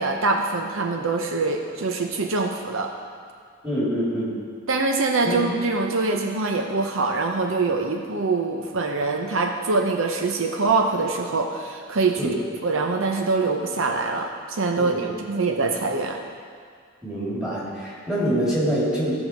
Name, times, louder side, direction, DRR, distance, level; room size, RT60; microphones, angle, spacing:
voice 1, 0.0-2.9 4.7-12.3 12.6-16.2, right 3 dB, 70° right, 3 dB, 0.7 m, -24 dB
voice 2, 3.6-4.4 5.2-5.3 12.2-12.4 14.8-15.1 17.0-19.1, equal, 5° right, -9 dB, 3.1 m, -25 dB
15.5 x 5.6 x 4.6 m, 2.1 s
head